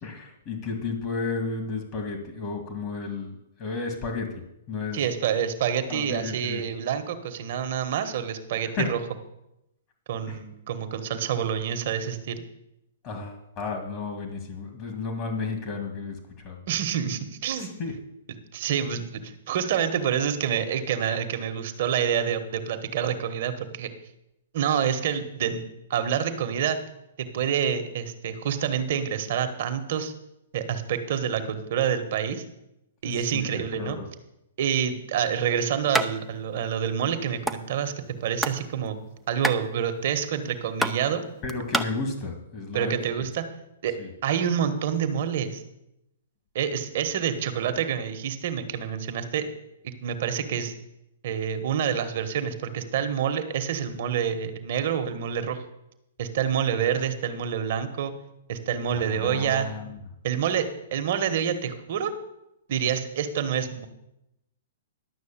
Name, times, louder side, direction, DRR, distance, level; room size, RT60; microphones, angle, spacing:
voice 1, 0.0-4.3 4.7-5.0 5.9-6.6 8.6-8.9 10.3-10.4 13.0-16.6 17.6-17.9 33.0-34.1 41.4-43.0 44.0-44.1 58.9-60.0, left 4 dB, 40° left, 3 dB, 2.1 m, -33 dB
voice 2, 4.9-9.0 10.1-12.5 16.7-17.7 18.5-23.9 24.5-25.6 25.9-26.8 27.2-30.1 30.5-32.4 33.0-34.0 34.6-37.9 38.2-39.0 39.3-41.2 42.7-43.4 43.8-43.9 44.2-45.6 46.5-49.4 49.8-50.7 51.2-55.6 56.2-58.1 58.5-59.7 60.2-62.1 62.7-63.9, right 8 dB, 55° right, 8 dB, 1.4 m, -27 dB
sound 1, 35.9-36.1 36.4-36.5 36.8-37.6 38.1-38.6 38.9-41.8, right 1 dB, ahead, 0.6 m, -28 dB
11.5 x 6.2 x 7.4 m, 0.86 s
hypercardioid pair, 135°, 0 cm